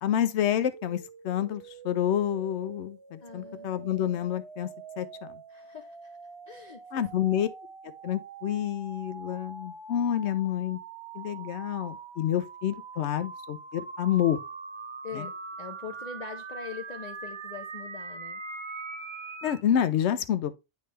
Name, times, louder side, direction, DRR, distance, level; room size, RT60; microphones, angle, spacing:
voice 1, 0.0-4.7 5.0-5.4 6.9-7.5 8.0-10.8 11.1-14.4 15.1-15.3 19.4-20.5, left 10 dB, 70° left, 0.9 m, -28 dB
sound 1, 0.7-19.6, right 4 dB, 35° right, 0.5 m, -43 dB
voice 2, 3.2-3.7 5.5-6.2 6.5-7.1 15.0-18.4 20.1-20.2, left 5 dB, 45° left, 0.6 m, -42 dB
9.4 x 3.2 x 3.2 m
omnidirectional pair, 1.2 m